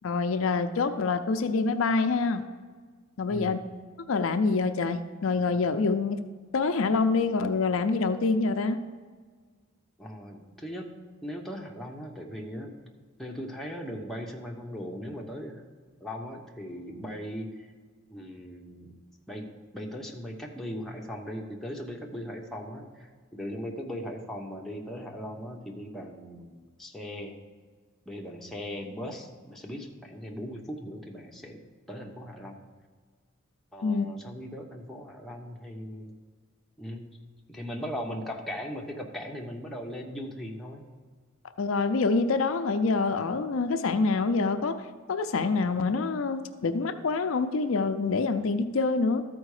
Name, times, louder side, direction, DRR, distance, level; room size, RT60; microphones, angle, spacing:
voice 1, 0.0-2.4 3.2-3.6 4.1-6.2 6.5-8.8 33.8-34.1 41.6-44.8 45.1-49.2, left 4 dB, 70° left, 8 dB, 0.5 m, -26 dB
voice 2, 3.3-3.6 10.0-12.7 13.2-15.6 16.0-17.7 18.1-18.9 19.3-27.4 28.1-32.6 33.7-36.1 36.8-37.2 37.5-40.8, equal, ahead, -1 dB, 0.9 m, -39 dB
13.0 x 4.5 x 4.9 m, 1.5 s
head